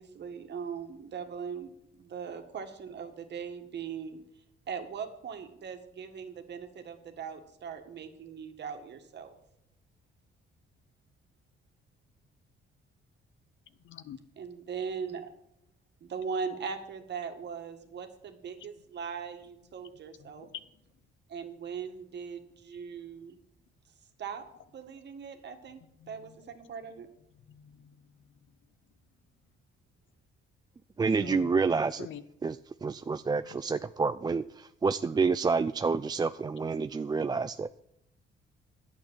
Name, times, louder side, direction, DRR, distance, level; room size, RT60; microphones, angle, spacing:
voice 1, 0.0-4.2 4.7-9.3 14.4-15.3 16.0-20.5 21.3-23.4 24.2-24.4 24.7-25.8 26.1-27.1, right 6 dB, 60° right, 6 dB, 1.9 m, -40 dB
voice 2, 13.8-14.2 18.6-18.7 19.8-19.9 20.2-20.6 26.0-26.4 27.5-28.0 31.2-31.5 32.0-32.2, left 9 dB, 75° left, 14 dB, 0.9 m, -45 dB
voice 3, 31.0-32.1 32.4-37.7, right 4 dB, 20° right, 12 dB, 0.4 m, -28 dB
10.5 x 8.7 x 7.4 m, 0.78 s
cardioid pair, 90°, 20 cm